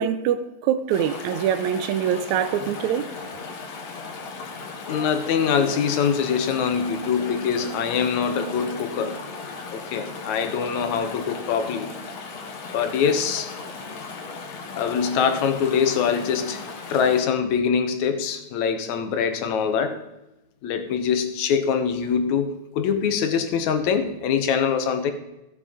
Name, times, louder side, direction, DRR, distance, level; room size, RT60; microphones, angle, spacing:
voice 1, 0.0-3.1, right 9 dB, 80° right, 2.0 m, -24 dB
Chatter / Stream, 0.9-17.2, left 4 dB, 65° left, 2.6 m, -36 dB
voice 2, 4.9-9.2 9.7-11.9 12.7-13.5 14.8-16.6 16.9-20.0 20.6-25.1, left 7 dB, 80° left, 2.3 m, -23 dB
15.0 x 7.4 x 4.9 m
omnidirectional pair, 3.3 m